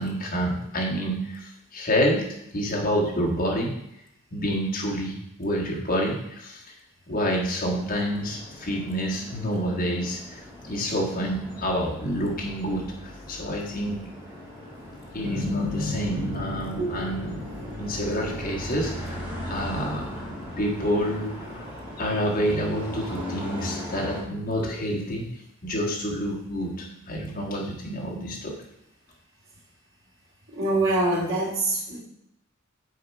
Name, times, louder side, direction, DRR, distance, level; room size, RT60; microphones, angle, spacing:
voice 1, 0.0-3.7 4.3-6.6 7.1-14.1 15.1-17.4 17.7-20.3 20.6-21.7 22.0-25.3 25.6-28.6, equal, 45° left, -2 dB, 1.5 m, -28 dB
sound 1, 7.7-24.2, left 1 dB, 10° right, 2.2 m, -39 dB
sound 2, 15.2-21.8, equal, 55° right, 2.1 m, -35 dB
voice 2, 30.5-32.0, right 2 dB, 80° right, -4 dB, 2.7 m, -24 dB
7.7 x 4.5 x 4.6 m, 0.80 s
head